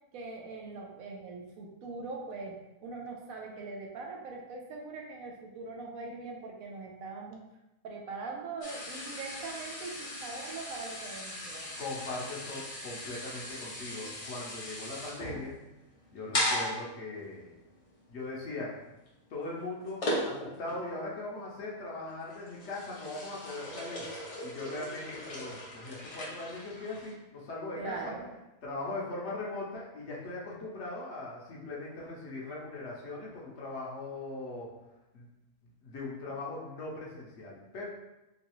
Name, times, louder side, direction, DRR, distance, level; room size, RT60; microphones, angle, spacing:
voice 1, 0.1-7.4 7.8-11.7 27.8-28.3, right 3 dB, 80° right, 0 dB, 1.1 m, -41 dB
sound 1, 8.6-20.8 21.2-21.5 22.1-27.1, left 1 dB, 40° left, 0.5 m, -38 dB
voice 2, 11.8-15.6 16.1-17.5 18.1-18.7 19.3-24.1 24.4-28.1 28.6-34.7 35.1-35.3 35.6-37.9, left 2 dB, 60° left, -4 dB, 1.0 m, -40 dB
3.8 x 2.3 x 3.0 m, 0.97 s
omnidirectional pair, 1.4 m